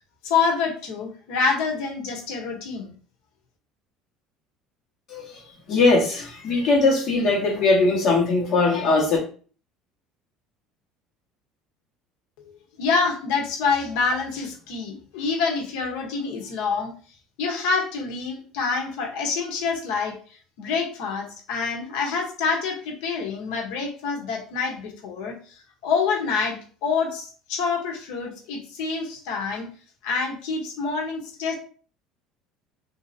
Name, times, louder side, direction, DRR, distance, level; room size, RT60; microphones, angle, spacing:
voice 1, 0.2-2.9 12.4-16.9 17.4-20.1 20.6-25.4 25.8-29.7 30.0-31.5, left 5 dB, 80° left, 2 dB, 0.9 m, -26 dB
voice 2, 5.7-9.2, left 3 dB, 40° left, -3 dB, 1.3 m, -20 dB
3.2 x 2.7 x 2.6 m, 0.42 s
cardioid pair, 160°, 0 cm